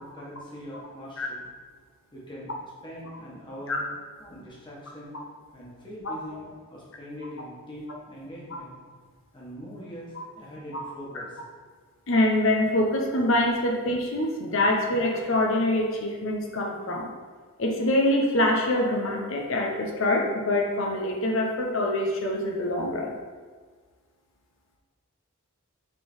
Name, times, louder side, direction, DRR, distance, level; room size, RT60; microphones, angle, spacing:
voice 1, 0.1-1.5 2.1-2.5 2.8-3.8 4.2-5.1 5.5-8.7 9.3-11.4 13.7-13.8, equal, 20° left, -6 dB, 1.6 m, -42 dB
voice 2, 12.1-17.1 17.6-23.1, left 1 dB, 65° left, 1 dB, 0.9 m, -25 dB
6.0 x 3.9 x 4.4 m, 1.5 s
head